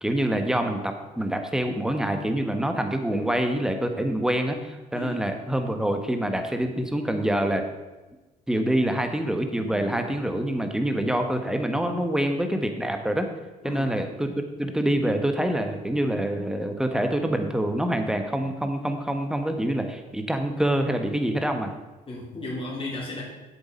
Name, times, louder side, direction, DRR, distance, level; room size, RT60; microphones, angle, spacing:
voice 1, 0.0-7.6 8.5-13.3 13.6-21.7, right 1 dB, 5° right, 6 dB, 1.3 m, -26 dB
voice 2, 4.9-5.3 13.6-14.0 22.1-23.2, left 2 dB, 25° left, -5 dB, 3.4 m, -34 dB
7.9 x 7.1 x 5.3 m, 1.1 s
hypercardioid pair, 55°, 21 cm